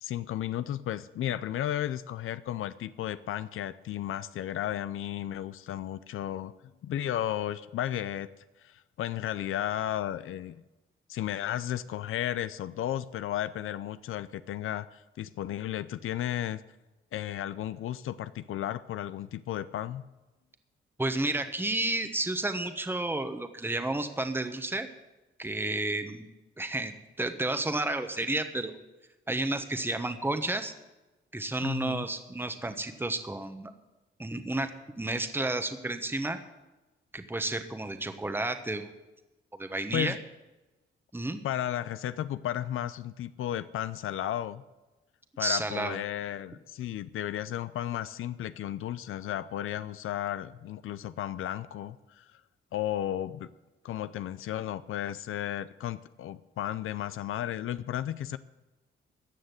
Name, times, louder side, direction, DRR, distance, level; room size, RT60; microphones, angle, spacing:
voice 1, 0.0-6.5 6.8-8.3 8.6-10.6 11.1-16.6 17.1-20.0 31.6-32.0 39.9-40.2 41.4-44.6 45.4-52.4 52.7-53.5 53.8-58.4, left 12 dB, 80° left, 14 dB, 0.5 m, -34 dB
voice 2, 21.0-24.9 25.4-26.3 26.6-28.7 29.3-30.7 31.3-33.7 34.2-36.4 37.1-38.9 39.6-40.2 41.1-41.4 45.4-46.0, right 2 dB, 10° right, 8 dB, 1.2 m, -31 dB
15.0 x 6.5 x 9.3 m, 1.1 s
cardioid pair, 75°, 21 cm